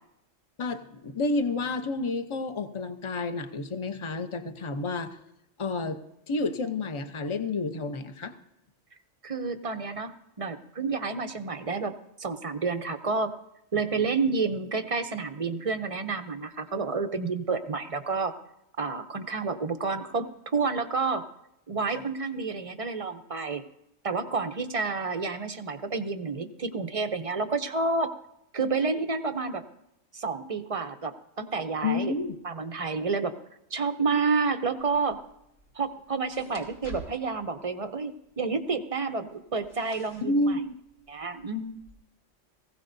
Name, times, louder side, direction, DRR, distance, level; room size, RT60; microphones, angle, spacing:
voice 1, 0.6-5.2 5.6-6.0 6.3-8.3 21.9-22.0 31.8-32.3 40.3-40.7, left 3 dB, 30° left, 8 dB, 0.7 m, -30 dB
voice 2, 9.2-11.9 12.2-13.3 13.7-18.4 18.8-21.2 21.7-23.6 24.0-28.1 28.5-29.6 30.1-32.1 32.4-33.4 33.7-35.2 35.7-40.6 41.1-41.8, right 4 dB, 35° right, 8 dB, 0.6 m, -29 dB
sound 1, 34.8-41.9, right 2 dB, 85° left, 2.7 m, -51 dB
19.5 x 15.5 x 2.7 m, 0.83 s
omnidirectional pair, 1.3 m